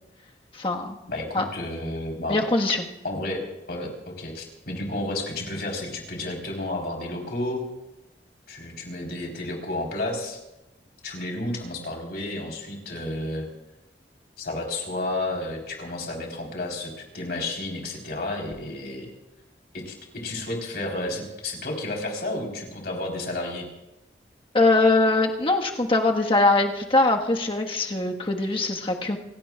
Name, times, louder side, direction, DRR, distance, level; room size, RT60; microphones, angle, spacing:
voice 1, 0.5-1.0 1.3-1.4 2.3-2.8 24.5-29.2, left 2 dB, 30° left, 1 dB, 1.5 m, -22 dB
voice 2, 1.1-2.4 3.0-7.6 8.5-10.4 11.0-13.5 14.4-19.1 19.7-23.7, left 2 dB, 60° left, 0 dB, 4.1 m, -31 dB
29.0 x 17.0 x 2.4 m, 0.96 s
head